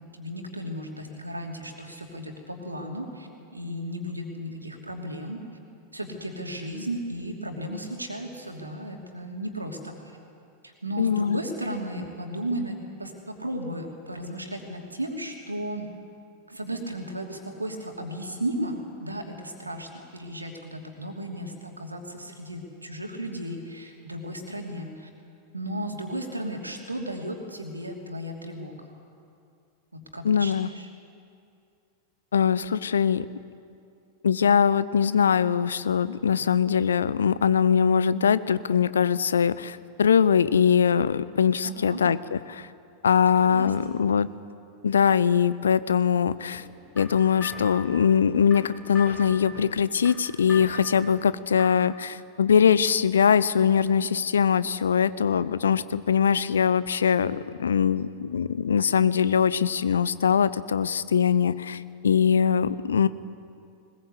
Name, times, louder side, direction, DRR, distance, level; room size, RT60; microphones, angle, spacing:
voice 1, 0.1-5.4 5.9-10.2 10.6-15.9 16.5-25.1 25.5-28.9 29.9-30.9 41.6-42.0 43.2-43.7, right 1 dB, 80° right, 2 dB, 2.8 m, -35 dB
voice 2, 11.0-11.4 30.2-30.7 32.3-33.3 34.2-42.7 43.0-44.3 44.8-46.6 47.0-63.1, left 7 dB, 70° left, 17 dB, 0.6 m, -22 dB
sound 1, 46.5-51.9, left 3 dB, 10° left, 6.2 m, -42 dB
21.0 x 20.5 x 8.2 m, 2.5 s
figure-of-eight pair, 90°, 0 cm